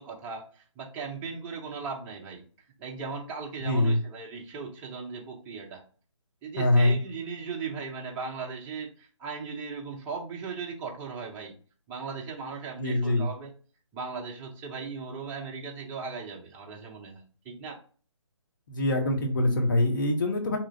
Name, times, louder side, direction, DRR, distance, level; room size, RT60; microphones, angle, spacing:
voice 1, 0.0-2.4 2.8-5.8 6.4-11.5 11.9-13.5 13.9-17.8, right 5 dB, 10° right, 0 dB, 0.5 m, -38 dB
voice 2, 3.6-4.0 6.6-7.0 12.8-13.3 18.7-20.6, left 1 dB, 40° left, 3 dB, 1.0 m, -24 dB
3.0 x 2.4 x 4.2 m, 0.40 s
figure-of-eight pair, 145°, 16 cm